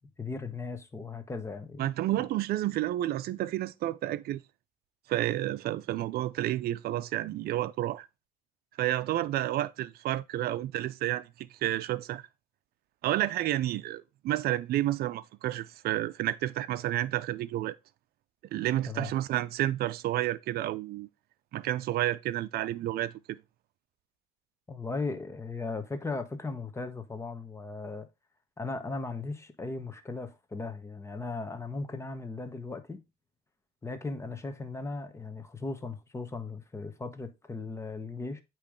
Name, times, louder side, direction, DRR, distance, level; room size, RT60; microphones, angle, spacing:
voice 1, 0.2-1.9 2.2-2.3 18.9-19.1 24.7-28.1 28.6-33.0 33.8-38.4, left 3 dB, 15° left, 1.1 m, -37 dB
voice 2, 1.8-4.4 5.1-8.1 8.8-12.2 13.0-17.8 18.5-21.1 21.5-23.4, right 14 dB, 65° right, 0.5 m, -30 dB
8.3 x 3.1 x 5.2 m
cardioid pair, 110°, 17 cm